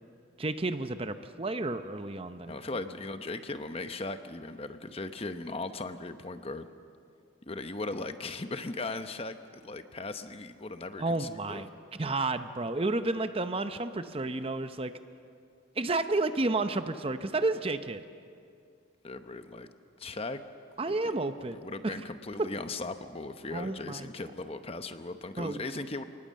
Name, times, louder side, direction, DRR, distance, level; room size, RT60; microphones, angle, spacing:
voice 1, 0.4-2.8 11.0-11.7 12.0-14.9 15.8-18.0 20.8-21.6 21.8-21.9 22.4-22.5 23.5-24.1 25.4-25.6, right 2 dB, 30° right, 10 dB, 0.7 m, -31 dB
voice 2, 2.5-6.7 7.5-11.7 19.0-19.7 20.0-20.4 20.9-21.1 21.4-26.0, left 2 dB, 30° left, 9 dB, 0.9 m, -38 dB
29.0 x 19.5 x 7.5 m, 2.4 s
head